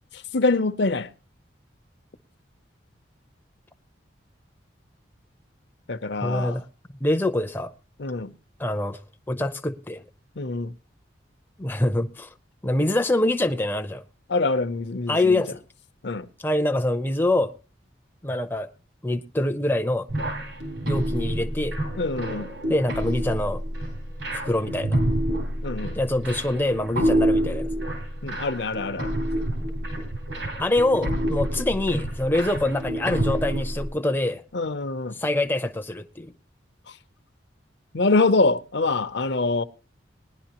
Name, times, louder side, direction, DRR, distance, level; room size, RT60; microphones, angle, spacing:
voice 1, 0.3-1.1 5.9-6.6 8.0-8.3 10.4-10.7 14.3-15.4 16.0-16.3 22.0-22.5 25.6-26.0 28.2-29.1 34.5-35.1 37.9-39.6, left 3 dB, 60° left, 0.7 m, -24 dB
voice 2, 6.2-6.7 7.0-7.7 8.6-9.0 9.3-10.0 11.6-12.3 12.6-14.0 15.1-15.6 16.4-17.5 18.2-18.7 19.0-20.1 20.8-21.8 22.7-23.6 24.3-25.0 25.9-27.7 30.6-34.4 35.1-36.3, left 1 dB, 10° left, 0.5 m, -25 dB
sound 1, 20.1-33.9, right 1 dB, 90° right, 4.5 m, -28 dB
19.5 x 11.0 x 2.9 m
head